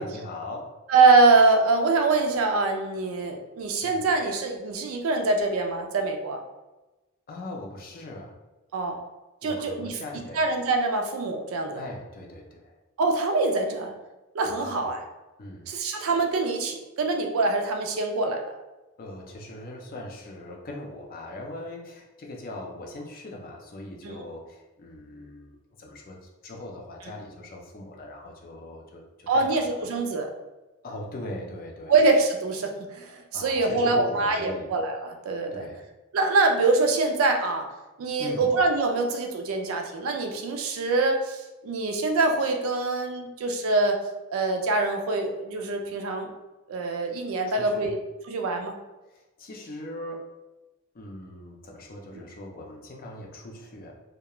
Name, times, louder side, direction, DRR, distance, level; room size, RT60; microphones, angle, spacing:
voice 1, 0.0-0.7 3.8-4.1 7.3-8.4 9.4-10.5 11.7-12.8 14.6-15.0 15.4-15.7 19.0-29.9 30.8-32.0 33.3-34.7 35.5-35.9 38.2-38.5 47.5-47.9 49.1-50.3 50.9-53.9, left 1 dB, 45° left, 0 dB, 0.5 m, -40 dB
voice 2, 0.9-6.4 8.7-9.0 9.4-10.0 10.4-11.8 13.0-13.9 14.3-15.0 15.7-18.4 24.0-24.2 29.3-30.3 31.9-35.7 36.1-37.7 38.0-44.0 44.3-46.3 46.7-48.0 48.3-48.7, right 3 dB, 80° right, 4 dB, 0.4 m, -24 dB
2.3 x 2.1 x 2.9 m, 1.1 s
head